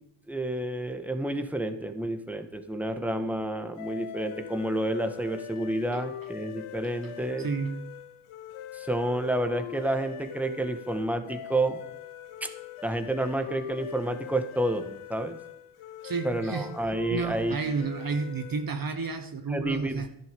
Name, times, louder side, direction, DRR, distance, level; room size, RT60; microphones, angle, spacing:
voice 1, 0.3-7.5 8.7-11.8 12.4-12.5 12.8-15.4 16.2-17.6 19.5-20.0, right 1 dB, 5° right, 6 dB, 1.7 m, -30 dB
sound 1, 3.8-18.8, left 12 dB, 85° left, 0.9 m, -42 dB
voice 2, 7.4-7.9 16.0-16.8 17.1-20.1, right 4 dB, 45° right, 8 dB, 1.2 m, -31 dB
12.5 x 11.0 x 5.4 m, 0.78 s
supercardioid pair, 55°, 48 cm